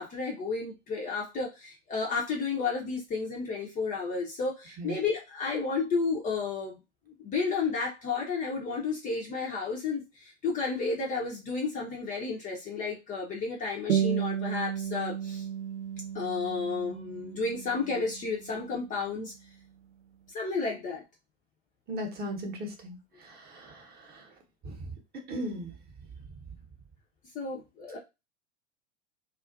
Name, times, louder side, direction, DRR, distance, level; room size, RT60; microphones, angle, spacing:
voice 1, 0.0-6.8 7.1-15.4 16.1-19.3 20.3-21.0 27.3-28.0, left 4 dB, 20° left, -1 dB, 0.5 m, -32 dB
sound 1, 13.9-18.9, right 9 dB, 75° right, 0.5 m, -33 dB
voice 2, 21.9-23.0 23.6-23.7 25.3-25.7, equal, 25° right, 3 dB, 0.8 m, -35 dB
2.4 x 2.3 x 2.4 m, 0.25 s
figure-of-eight pair, 90°, 36 cm